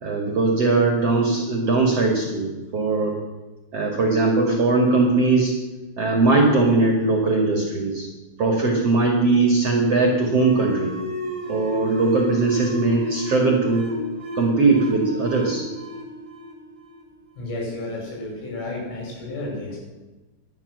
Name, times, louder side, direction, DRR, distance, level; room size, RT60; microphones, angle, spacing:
voice 1, 0.0-3.2 3.7-5.5 6.0-8.1 8.4-11.0 11.5-13.9 14.4-15.7, right 3 dB, 45° right, 1 dB, 2.2 m, -20 dB
sound 1, 10.3-17.5, left 1 dB, 10° right, 2.5 m, -32 dB
voice 2, 17.4-19.8, left 2 dB, 75° left, -3 dB, 9.2 m, -31 dB
18.0 x 12.0 x 6.7 m, 1.2 s
omnidirectional pair, 5.4 m